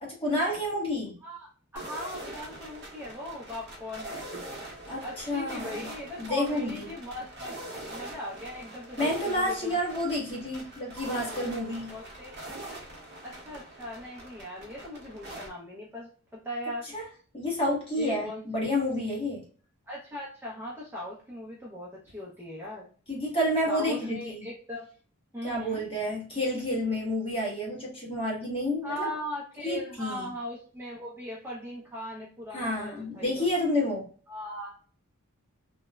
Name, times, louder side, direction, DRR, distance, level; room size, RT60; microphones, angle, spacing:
voice 1, 0.0-1.2 4.9-5.9 6.2-6.8 9.0-11.9 16.9-17.0 17.3-18.3 18.5-19.4 23.1-24.4 25.4-29.1 29.6-30.3 32.5-34.1, left 1 dB, 25° left, -4 dB, 1.1 m, -29 dB
voice 2, 1.2-4.3 5.0-7.6 7.9-9.8 11.9-12.3 13.2-16.9 18.0-18.6 19.9-22.9 23.7-24.9 25.3-25.8 28.8-33.5 34.3-34.9, equal, 10° right, -5 dB, 0.5 m, -39 dB
sound 1, 1.8-15.5, right 1 dB, 50° right, 0.7 m, -43 dB
3.1 x 2.0 x 2.2 m, 0.41 s
head